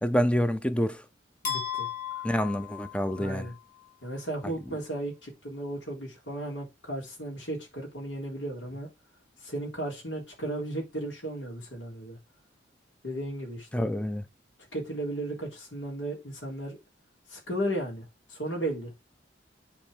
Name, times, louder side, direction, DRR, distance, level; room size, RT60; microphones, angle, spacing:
voice 1, 0.0-1.0 2.2-3.5 4.4-4.5 13.7-14.2, equal, 5° left, 0.5 m, -27 dB
voice 2, 1.4-2.2 3.2-3.5 4.0-8.9 9.4-12.2 13.0-13.9 14.7-16.8 17.3-18.0 18.3-18.9, right 1 dB, 80° left, 3.5 m, -35 dB
sound 1, 1.4-3.6, left 8 dB, 45° left, 3.5 m, -35 dB
8.7 x 4.5 x 4.9 m
head